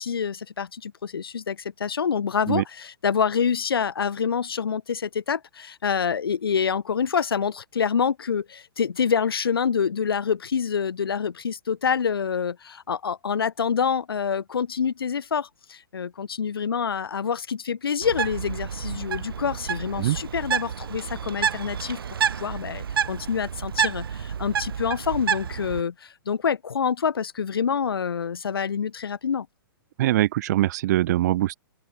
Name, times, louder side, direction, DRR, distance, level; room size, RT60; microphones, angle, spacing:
voice 1, 0.0-22.0 22.4-29.5, left 6 dB, 75° left, 0.9 m, -26 dB
Bird, 18.0-25.8, right 7 dB, 70° right, 1.3 m, -29 dB
voice 2, 30.0-31.6, right 15 dB, 45° right, 0.5 m, -22 dB
open air
figure-of-eight pair, 120°, 12 cm